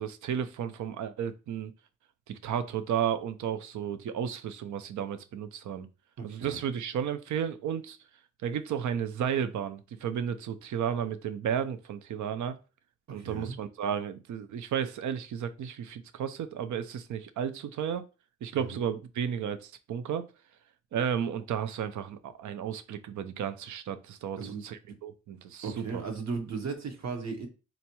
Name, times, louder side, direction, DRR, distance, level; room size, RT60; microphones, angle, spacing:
voice 1, 0.0-1.7 2.3-5.9 6.2-8.0 8.4-12.6 13.1-18.1 18.4-20.3 20.9-26.0, right 8 dB, 85° right, 0.4 m, -33 dB
voice 2, 6.2-6.6 13.1-13.5 18.5-18.8 24.4-25.0 25.6-27.5, right 5 dB, 65° right, 0.9 m, -36 dB
3.9 x 2.2 x 2.9 m
wide cardioid pair, 110°, 29 cm